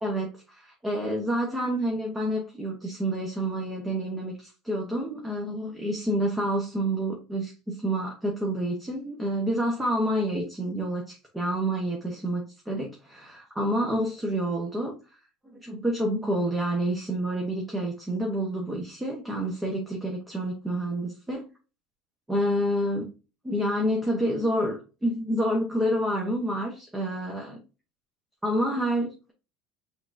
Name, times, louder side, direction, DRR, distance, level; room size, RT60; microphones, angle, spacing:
voice 1, 0.0-15.2 15.5-21.5 22.3-23.1 23.4-27.6 28.4-29.3, right 1 dB, 10° right, 1.0 m, -28 dB
5.8 x 3.3 x 2.6 m
cardioid pair, 160°, 0 cm